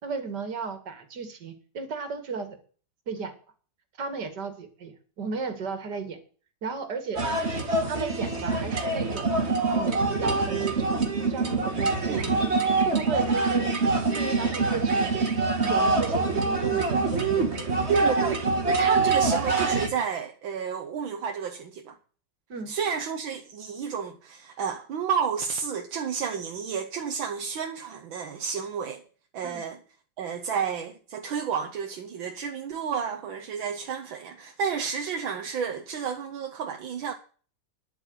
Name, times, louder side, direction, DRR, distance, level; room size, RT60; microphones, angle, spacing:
voice 1, 0.0-2.6 3.1-3.3 4.0-6.2 6.6-7.3 7.9-9.3 9.7-12.3 12.8-13.7 14.1-15.3 15.6-16.9 17.3-17.7 22.5-22.7 29.4-29.6, right 4 dB, 55° right, 2.7 m, -35 dB
sound 1, 7.2-19.9, right 3 dB, 35° right, 2.3 m, -25 dB
voice 2, 12.0-12.3 17.9-18.4 18.7-22.0 22.7-29.0 29.3-29.8 30.2-37.1, right 6 dB, 75° right, 1.9 m, -31 dB
10.5 x 8.3 x 8.0 m
omnidirectional pair, 2.2 m